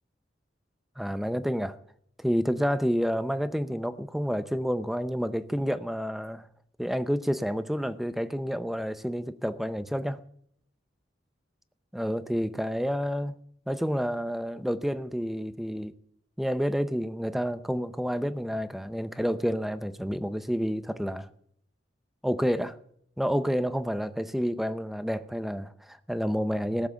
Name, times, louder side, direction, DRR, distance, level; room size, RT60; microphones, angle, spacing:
voice 1, 1.0-1.8 2.2-6.5 6.8-10.2 11.9-13.3 13.7-15.9 16.4-21.3 22.2-22.8 23.2-26.9, equal, ahead, 0.6 m, -29 dB
18.0 x 7.4 x 6.9 m
head